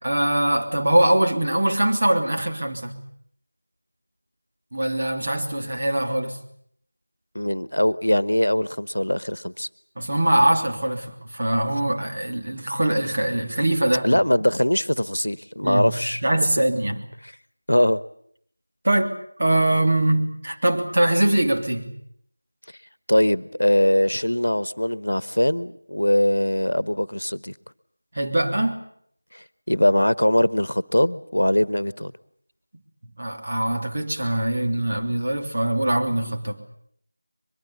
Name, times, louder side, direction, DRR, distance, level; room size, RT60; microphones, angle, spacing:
voice 1, 0.0-3.0 4.7-6.4 10.0-14.2 15.6-15.9 16.2-17.0 18.8-21.9 28.1-28.8 33.2-36.6, right 1 dB, 45° right, 3 dB, 3.2 m, -22 dB
voice 2, 7.3-9.7 14.0-16.2 17.7-18.0 23.1-27.5 29.3-32.1, left 1 dB, 85° left, 18 dB, 1.1 m, -21 dB
22.5 x 22.5 x 8.5 m, 0.65 s
figure-of-eight pair, 170°, 0 cm